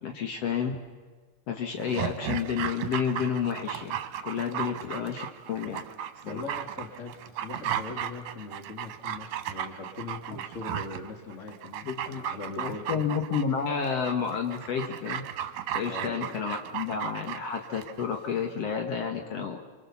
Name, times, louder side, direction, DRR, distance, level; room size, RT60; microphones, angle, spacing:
voice 1, 0.0-0.8 1.5-4.0 4.2-5.8 6.3-6.4 11.8-12.2 12.6-15.2 15.7-19.6, left 6 dB, 60° left, 4 dB, 2.2 m, -30 dB
Dog, 1.8-18.1 18.4-18.5, right 10 dB, 70° right, 2.3 m, -35 dB
voice 2, 6.2-13.0 15.9-16.4, left 4 dB, 30° left, 4 dB, 2.0 m, -41 dB
26.5 x 24.5 x 7.0 m, 1.4 s
omnidirectional pair, 3.4 m